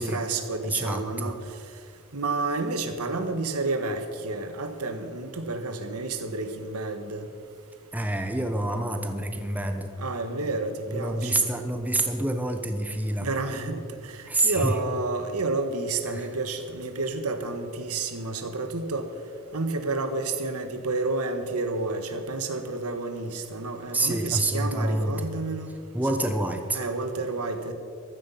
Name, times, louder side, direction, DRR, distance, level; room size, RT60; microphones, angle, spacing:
voice 1, 0.0-1.4 2.1-7.2 10.0-11.5 13.2-19.1 19.5-25.7 26.2-26.4 26.7-27.7, right 3 dB, 90° right, 8 dB, 1.4 m, -30 dB
voice 2, 0.6-1.3 7.9-9.9 10.9-13.3 14.3-14.8 16.1-16.3 23.9-25.3 25.9-26.8, right 1 dB, 5° right, 6 dB, 0.9 m, -27 dB
15.0 x 13.0 x 5.7 m, 2.2 s
head